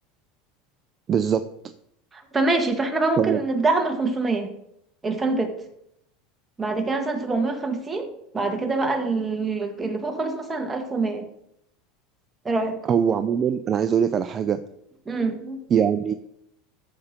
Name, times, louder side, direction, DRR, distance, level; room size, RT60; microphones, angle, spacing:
voice 1, 1.1-1.4 3.2-3.4 12.9-14.6 15.7-16.1, right 7 dB, 30° right, 11 dB, 0.5 m, -22 dB
voice 2, 2.1-4.5 5.0-5.5 6.6-11.3 12.4-12.8 15.0-15.6, right 3 dB, 15° right, 4 dB, 1.6 m, -25 dB
13.5 x 5.7 x 5.1 m, 0.78 s
supercardioid pair, 125°, 0 cm